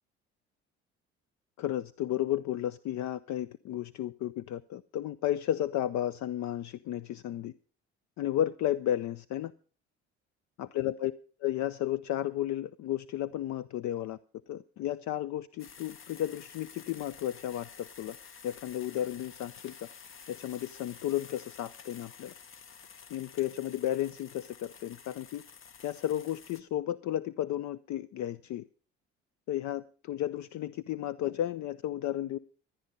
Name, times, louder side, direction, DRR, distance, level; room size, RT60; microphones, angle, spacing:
voice 1, 1.6-7.5 8.2-9.5 10.6-11.1 11.4-14.2 14.5-18.2 18.4-19.7 20.3-22.3 23.1-25.4 25.8-28.6 29.5-32.4, left 12 dB, 55° left, 18 dB, 0.6 m, -33 dB
sound 1, 15.6-26.6, left 6 dB, 40° left, 0.9 m, -51 dB
15.5 x 10.0 x 5.4 m, 0.41 s
hypercardioid pair, 65°, 33 cm